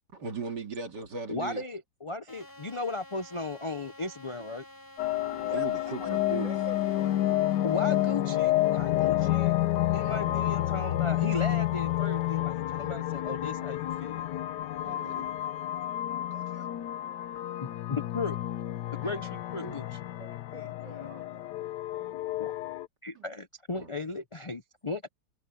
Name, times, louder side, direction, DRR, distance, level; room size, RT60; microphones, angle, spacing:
voice 1, 0.1-1.6 5.2-6.5 9.8-10.2 14.8-15.3 19.0-19.1 19.6-19.8 20.2-20.4 21.0-21.1 23.1-23.3 23.7-23.9, right 5 dB, 80° right, 3.2 m, -39 dB
voice 2, 1.3-4.6 7.6-9.5 9.9-14.3 17.6-18.4 18.9-20.0 22.4-22.5 23.0-25.1, left 3 dB, 40° left, 0.4 m, -36 dB
sound 1, 2.3-12.4, left 1 dB, 10° left, 5.0 m, -53 dB
sound 2, 5.0-22.9, left 14 dB, 85° left, 1.3 m, -29 dB
voice 3, 5.4-7.2 16.3-16.8 20.5-21.7, right 2 dB, 50° right, 7.7 m, -47 dB
omnidirectional pair, 1.8 m